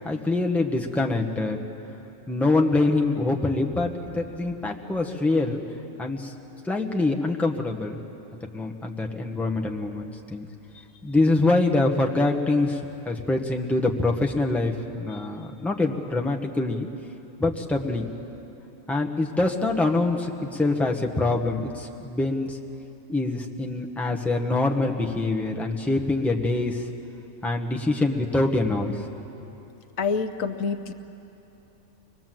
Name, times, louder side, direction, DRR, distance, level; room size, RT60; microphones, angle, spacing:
voice 1, 0.0-1.6 2.3-5.6 6.0-6.3 6.6-8.0 8.4-10.5 11.0-16.9 17.4-18.1 18.9-22.6 23.1-26.9 27.4-29.1, left 2 dB, ahead, 0 dB, 1.1 m, -25 dB
voice 2, 30.0-30.9, left 5 dB, 75° left, 9 dB, 1.2 m, -27 dB
24.5 x 20.0 x 7.7 m, 2.9 s
omnidirectional pair, 1.4 m